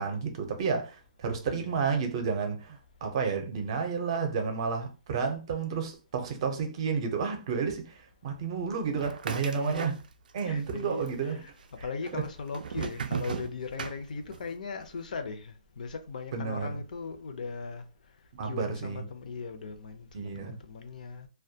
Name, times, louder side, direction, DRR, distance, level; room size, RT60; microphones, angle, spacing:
voice 1, 0.0-10.0 10.3-11.4 11.8-11.9 12.1-12.2 16.3-16.8 18.3-19.0 20.1-20.6, right 5 dB, 40° right, 0.5 m, -31 dB
voice 2, 1.5-1.8 9.6-9.8 10.4-11.5 11.8-17.8 18.4-21.3, left 4 dB, 70° left, 0.5 m, -38 dB
sound 1, 9.0-10.4 10.7-11.4 12.1-14.5, right 6 dB, 85° right, 0.3 m, -36 dB
2.2 x 2.2 x 2.7 m
hypercardioid pair, 170°, 4 cm